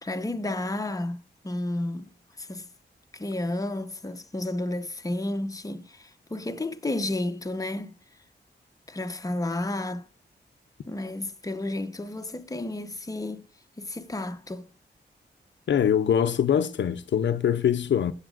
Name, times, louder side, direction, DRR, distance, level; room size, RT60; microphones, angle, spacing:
voice 1, 0.0-2.1 2.4-2.7 3.1-8.0 8.9-10.1 10.9-13.4 13.8-14.7, left 1 dB, 20° left, 0.9 m, -32 dB
voice 2, 15.7-18.1, left 9 dB, 75° left, 0.6 m, -23 dB
15.5 x 8.2 x 2.5 m
cardioid pair, 80°, 19 cm